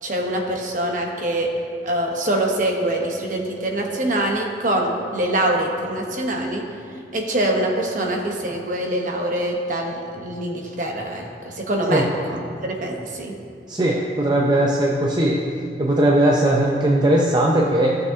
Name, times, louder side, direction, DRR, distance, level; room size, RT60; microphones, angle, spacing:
voice 1, 0.0-1.5 1.8-6.7 7.1-13.3, right 1 dB, 45° right, 1 dB, 1.1 m, -24 dB
voice 2, 13.7-15.4 15.8-18.0, right 1 dB, 25° right, -2 dB, 0.5 m, -18 dB
16.5 x 6.6 x 2.8 m, 2.4 s
head